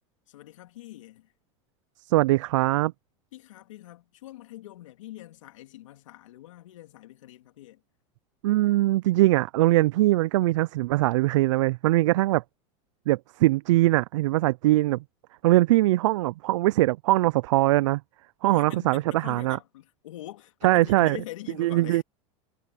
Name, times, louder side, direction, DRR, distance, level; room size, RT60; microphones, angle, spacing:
voice 1, 0.3-1.3 3.3-7.8 18.5-22.0, left 15 dB, 85° left, 2.6 m, -44 dB
voice 2, 2.1-2.9 8.4-12.4 13.1-15.0 15.4-18.0 18.4-19.6 20.6-21.2 21.6-22.0, right 17 dB, 75° right, 0.5 m, -22 dB
supercardioid pair, 110°, 16 cm